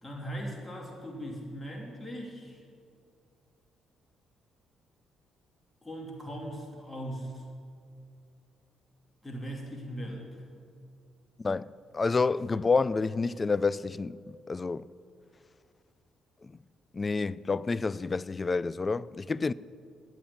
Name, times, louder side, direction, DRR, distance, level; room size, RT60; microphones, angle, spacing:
voice 1, 0.0-2.6 5.8-7.4 9.2-10.2, equal, 15° left, 2.9 m, -39 dB
voice 2, 11.4-14.2 14.5-14.9 16.4-16.5 16.9-19.5, left 4 dB, 30° left, 0.4 m, -29 dB
12.0 x 9.3 x 8.7 m
supercardioid pair, 75°, 0 cm